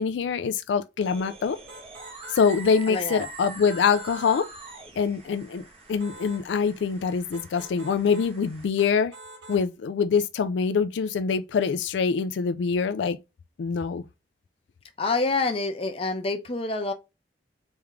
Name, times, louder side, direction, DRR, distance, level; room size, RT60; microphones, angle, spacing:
voice 1, 0.0-1.6 2.3-4.5 5.0-9.1 9.5-13.2 13.6-14.0, left 6 dB, 80° left, 0.3 m, -24 dB
sound 1, 1.0-8.7, right 3 dB, 35° right, 1.1 m, -44 dB
sound 2, 1.7-3.3 3.6-4.5 6.0-6.5 7.3-8.3 8.8-9.7, right 2 dB, 85° right, 1.1 m, -46 dB
voice 2, 2.9-3.3 15.0-16.9, left 3 dB, 30° left, 0.7 m, -27 dB
3.5 x 3.5 x 3.0 m
head